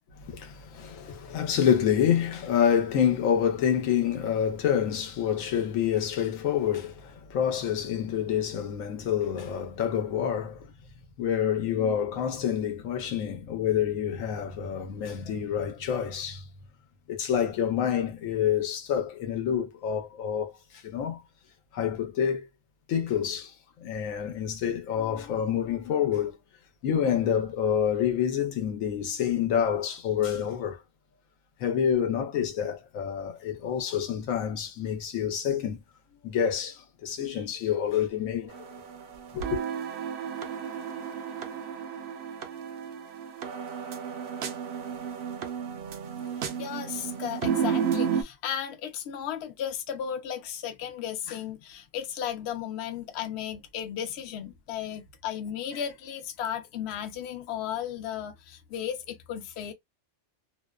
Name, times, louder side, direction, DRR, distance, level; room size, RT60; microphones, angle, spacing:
voice 1, 0.3-10.6 11.2-16.4 17.1-20.5 20.8-21.2 21.7-22.5 22.9-23.5 23.8-26.3 26.8-30.8 31.6-35.8 36.2-38.5 39.3-39.6, left 8 dB, 85° left, 1.1 m, -27 dB
sound 1, 38.5-48.2, right 7 dB, 65° right, 0.7 m, -32 dB
voice 2, 46.2-59.7, left 9 dB, 65° left, 0.8 m, -35 dB
2.6 x 2.1 x 2.2 m
omnidirectional pair, 1.4 m